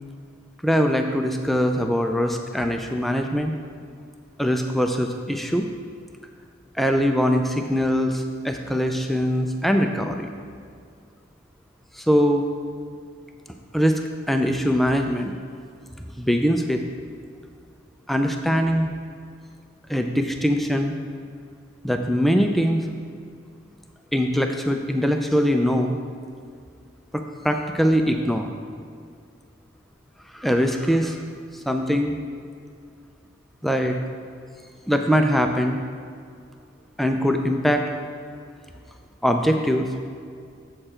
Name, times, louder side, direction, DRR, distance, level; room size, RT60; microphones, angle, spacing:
voice 1, 0.6-3.5 4.4-5.7 6.8-10.3 12.0-12.4 13.7-15.3 16.2-16.8 18.1-18.9 19.9-21.0 21.8-22.8 24.1-25.9 27.1-28.5 30.3-31.2 31.7-32.2 33.6-34.0 34.9-35.8 37.0-37.8 39.2-39.9, equal, ahead, 4 dB, 0.3 m, -22 dB
7.7 x 6.7 x 4.3 m, 2.2 s
head